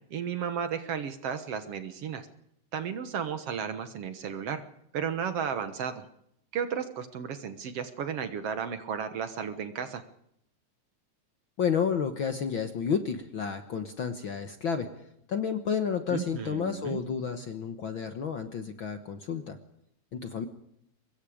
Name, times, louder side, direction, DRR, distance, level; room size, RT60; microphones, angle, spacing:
voice 1, 0.1-2.3 2.7-4.6 4.9-6.0 6.5-10.0 16.1-17.0, right 7 dB, 60° right, 10 dB, 2.0 m, -33 dB
voice 2, 11.6-14.9 15.3-19.6 20.1-20.5, left 7 dB, 55° left, 8 dB, 1.5 m, -31 dB
24.5 x 21.0 x 5.0 m, 0.75 s
omnidirectional pair, 3.5 m